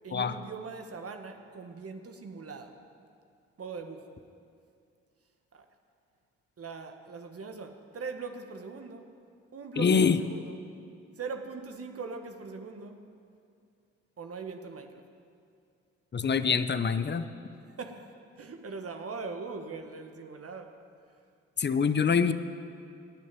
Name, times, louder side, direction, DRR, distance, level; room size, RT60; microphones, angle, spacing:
voice 1, 0.0-2.8 3.6-4.1 5.5-5.6 6.6-9.1 9.5-10.6 11.2-13.1 14.2-15.0 17.7-20.8, right 4 dB, 50° right, 6 dB, 1.5 m, -41 dB
voice 2, 9.8-10.2 16.1-17.3 21.6-22.3, left 6 dB, 35° left, 12 dB, 0.9 m, -25 dB
18.5 x 6.5 x 9.1 m, 2.4 s
hypercardioid pair, 45°, 31 cm